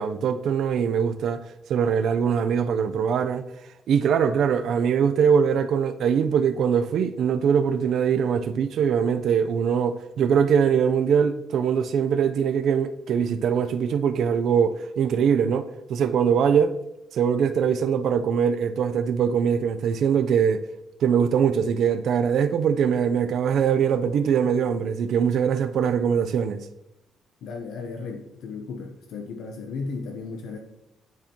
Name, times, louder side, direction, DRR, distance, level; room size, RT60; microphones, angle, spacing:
voice 1, 0.0-1.4 1.7-3.4 3.9-16.8 17.1-20.6 21.0-26.7, right 7 dB, 60° right, 0.5 m, -22 dB
voice 2, 27.4-30.6, left 4 dB, 75° left, 0.7 m, -35 dB
10.5 x 4.4 x 2.9 m
cardioid pair, 155°, 0 cm